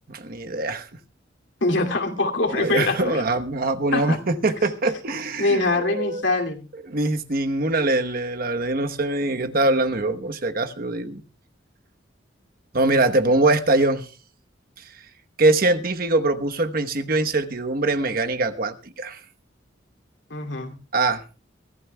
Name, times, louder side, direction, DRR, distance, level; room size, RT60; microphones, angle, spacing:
voice 1, 0.1-0.9 2.5-6.2 6.9-11.2 12.7-14.0 15.4-19.2 20.9-21.2, right 2 dB, 50° right, 1.1 m, -23 dB
voice 2, 1.6-3.2 3.9-4.2 5.4-6.7 20.3-20.8, left 2 dB, 75° left, 2.6 m, -23 dB
23.5 x 15.0 x 2.3 m
head